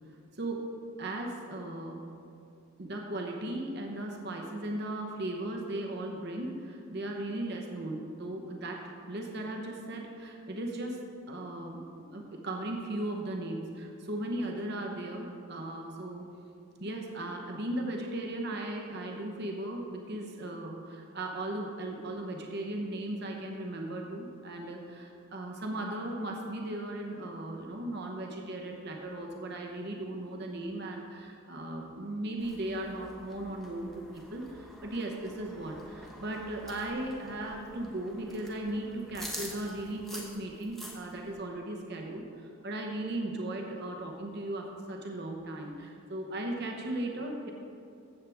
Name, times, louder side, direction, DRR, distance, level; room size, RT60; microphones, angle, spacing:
voice 1, 1.0-2.0 2.8-11.0 11.3-16.2 16.8-47.5, right 1 dB, 50° right, 1 dB, 0.9 m, -37 dB
sound 1, 32.4-41.3, equal, ahead, 1.0 m, -47 dB
15.0 x 7.3 x 3.5 m, 2.6 s
head